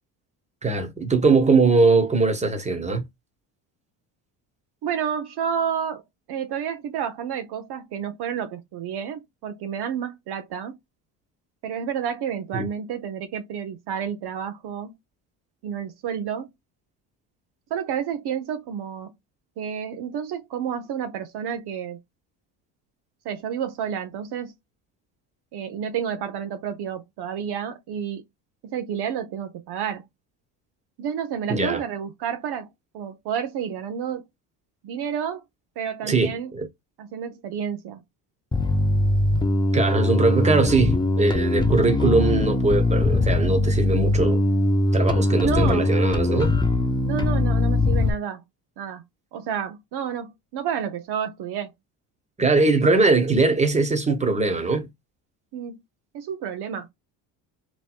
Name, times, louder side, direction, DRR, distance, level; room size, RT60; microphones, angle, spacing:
voice 1, 0.6-3.1 12.5-12.7 31.5-31.8 36.0-36.7 39.7-44.4 44.9-46.5 52.4-54.9, right 3 dB, 15° right, 1.1 m, -21 dB
voice 2, 4.8-6.0 6.3-10.8 11.6-14.9 15.6-16.5 17.7-19.1 19.6-22.0 23.2-24.5 25.5-28.2 28.6-30.0 31.0-32.7 32.9-34.3 34.8-35.4 35.8-36.5 37.0-38.0 45.3-45.9 47.0-48.4 48.8-49.0 49.3-51.7 55.5-55.8 56.1-56.9, right 8 dB, 55° right, 0.7 m, -30 dB
Bass guitar, 38.5-48.1, left 2 dB, 10° left, 0.5 m, -21 dB
3.1 x 3.0 x 2.4 m
supercardioid pair, 75°, 48 cm